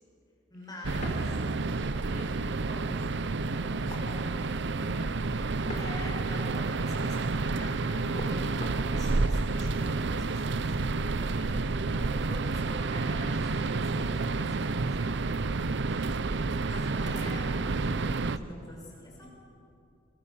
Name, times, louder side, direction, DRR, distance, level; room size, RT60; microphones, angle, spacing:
voice 1, 0.5-1.1 5.8-10.9 11.2-16.2 16.7-19.3, left 1 dB, 20° left, -3 dB, 6.7 m, -46 dB
sound 1, 0.8-18.4, right 3 dB, 65° right, 0.7 m, -30 dB
sound 2, 1.0-17.5, left 1 dB, 40° left, 3.9 m, -49 dB
voice 2, 1.6-5.3 16.8-17.1 19.2-19.3, right 1 dB, 50° right, 0 dB, 6.0 m, -47 dB
27.0 x 22.0 x 7.3 m, 2.6 s
head